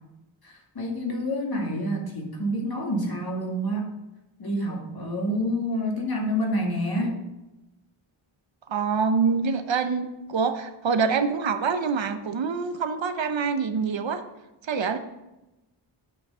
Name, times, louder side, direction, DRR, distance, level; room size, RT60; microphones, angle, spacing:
voice 1, 0.4-3.9 4.4-7.2, equal, 50° left, 0 dB, 2.3 m, -28 dB
voice 2, 8.7-14.2 14.6-15.0, right 5 dB, 70° right, 8 dB, 0.9 m, -25 dB
8.6 x 6.4 x 5.6 m, 0.97 s
wide cardioid pair, 100°, 48 cm